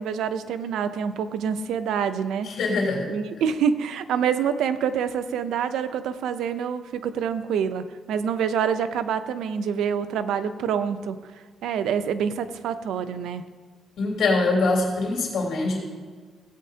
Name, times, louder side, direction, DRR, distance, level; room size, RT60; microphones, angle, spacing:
voice 1, 0.0-2.5 3.1-11.2 11.6-13.4, right 7 dB, 85° right, 10 dB, 0.6 m, -26 dB
voice 2, 2.4-3.1 14.0-15.8, left 3 dB, 75° left, -3 dB, 3.4 m, -23 dB
17.0 x 8.5 x 2.8 m, 1.5 s
cardioid pair, 110°, 0 cm